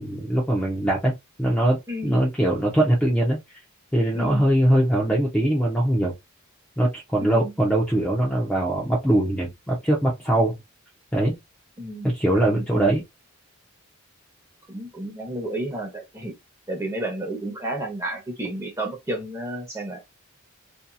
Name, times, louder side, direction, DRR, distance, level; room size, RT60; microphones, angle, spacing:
voice 1, 0.0-3.4 3.9-6.1 6.8-10.6 11.1-11.3 12.0-13.0, right 1 dB, 5° left, 0.5 m, -22 dB
voice 2, 1.9-2.2 4.1-4.5 7.2-7.5 11.8-12.9 14.7-16.3 16.7-20.0, right 1 dB, 15° right, 0.9 m, -32 dB
2.7 x 2.6 x 2.3 m
head